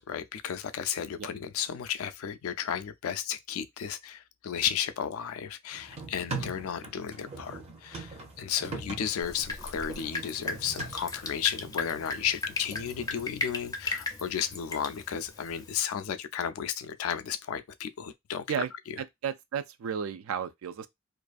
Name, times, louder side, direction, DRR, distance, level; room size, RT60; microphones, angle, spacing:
voice 1, 0.0-19.0, left 8 dB, 85° left, 0.4 m, -33 dB
sound 1, 5.7-13.2, right 3 dB, 30° right, 0.6 m, -42 dB
Drip, 9.2-15.8, left 3 dB, 20° left, 0.4 m, -37 dB
voice 2, 19.0-20.9, right 8 dB, 75° right, 0.3 m, -33 dB
2.5 x 2.3 x 2.4 m
head